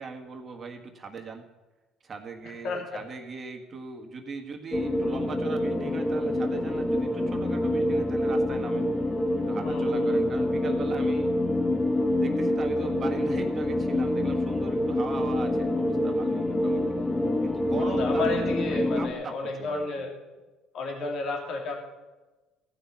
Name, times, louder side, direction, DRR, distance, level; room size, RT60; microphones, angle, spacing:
voice 1, 0.0-1.4 2.0-8.9 9.4-11.3 12.2-16.8 17.4-18.4 18.7-19.8, right 4 dB, 40° right, 4 dB, 1.6 m, -39 dB
voice 2, 2.4-3.0 9.6-10.2 17.7-20.1 20.7-21.7, left 3 dB, 60° left, 1 dB, 2.5 m, -32 dB
sound 1, 4.7-19.1, left 1 dB, 15° left, 1.2 m, -26 dB
15.0 x 5.9 x 7.1 m, 1.2 s
supercardioid pair, 80°, 0 cm